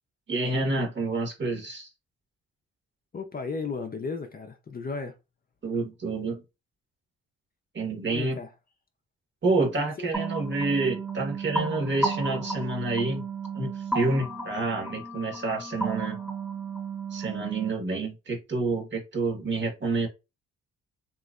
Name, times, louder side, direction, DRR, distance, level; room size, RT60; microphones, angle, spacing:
voice 1, 0.3-1.9 5.6-6.4 7.7-8.4 9.4-13.2 13.5-16.2 17.1-20.1, right 3 dB, 40° right, 1.5 m, -28 dB
voice 2, 3.1-5.1 8.1-8.5 10.0-10.1, left 4 dB, 30° left, 0.6 m, -34 dB
sound 1, 10.1-17.7, right 3 dB, 5° right, 1.1 m, -33 dB
3.1 x 3.0 x 2.4 m
cardioid pair, 90°, 30 cm